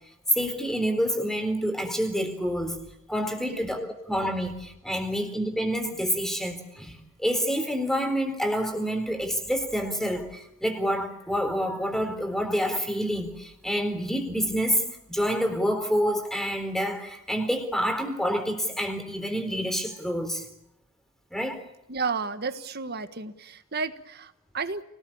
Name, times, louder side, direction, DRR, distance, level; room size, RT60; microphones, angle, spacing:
voice 1, 0.3-2.8 3.1-14.8 15.1-20.5 21.3-21.6, equal, ahead, 7 dB, 3.8 m, -28 dB
voice 2, 21.9-24.8, right 4 dB, 50° right, 11 dB, 1.5 m, -32 dB
29.5 x 19.0 x 8.7 m, 0.83 s
head